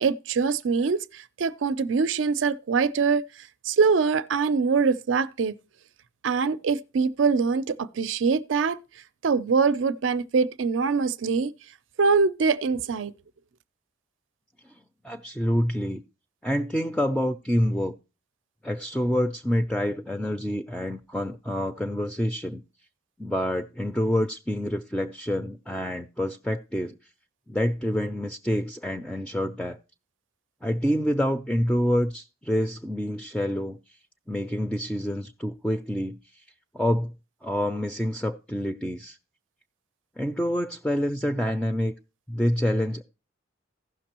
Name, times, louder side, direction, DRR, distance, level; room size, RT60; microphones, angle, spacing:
voice 1, 0.0-3.2 3.6-5.5 6.2-8.8 9.2-11.5 12.0-13.1, right 5 dB, 75° right, 0.5 m, -23 dB
voice 2, 15.0-16.0 16.4-17.9 18.6-22.6 23.2-27.0 27.5-29.8 30.6-33.8 34.3-36.2 36.7-37.1 37.4-39.2 40.2-41.9 42.3-43.0, equal, 5° left, 0.3 m, -27 dB
15.5 x 6.0 x 2.9 m
head